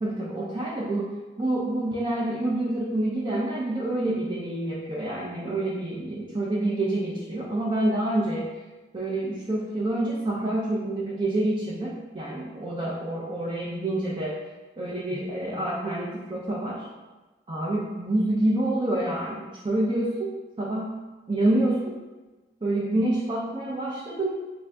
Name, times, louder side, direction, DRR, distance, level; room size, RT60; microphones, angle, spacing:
voice 1, 0.0-1.1 1.4-8.4 8.9-14.4 14.8-16.9 17.5-21.9 22.6-24.3, right 1 dB, 30° right, -6 dB, 0.4 m, -27 dB
3.4 x 2.6 x 3.3 m, 1.2 s
head